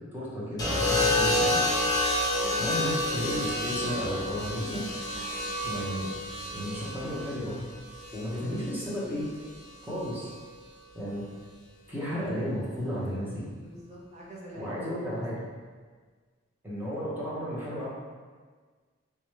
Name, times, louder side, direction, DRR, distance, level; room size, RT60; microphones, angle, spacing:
voice 1, 0.1-1.6 2.6-4.8 5.6-6.0 6.5-7.7 8.1-9.2 9.8-10.3 10.9-11.3 11.9-13.5 14.5-15.4 16.6-17.9, equal, 10° right, -9 dB, 1.0 m, -33 dB
sound 1, 0.6-8.7 10.0-10.4, left 1 dB, 20° left, 0.8 m, -29 dB
voice 2, 2.3-2.8 3.3-3.4 5.1-5.5 13.6-15.0, right 1 dB, 35° right, -6 dB, 0.9 m, -45 dB
3.5 x 3.0 x 3.1 m, 1.5 s
head